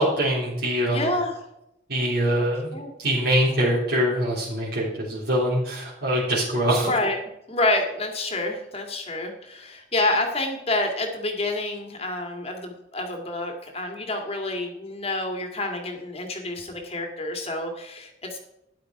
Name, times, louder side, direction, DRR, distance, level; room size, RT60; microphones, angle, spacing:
voice 1, 0.0-1.2 1.9-2.7 3.0-6.9, equal, 55° right, -7 dB, 3.8 m, -23 dB
voice 2, 0.9-1.4 2.4-2.5 2.7-2.9 6.8-7.2 7.5-18.4, left 2 dB, 30° left, 3 dB, 2.0 m, -28 dB
13.0 x 10.0 x 4.8 m, 0.84 s
head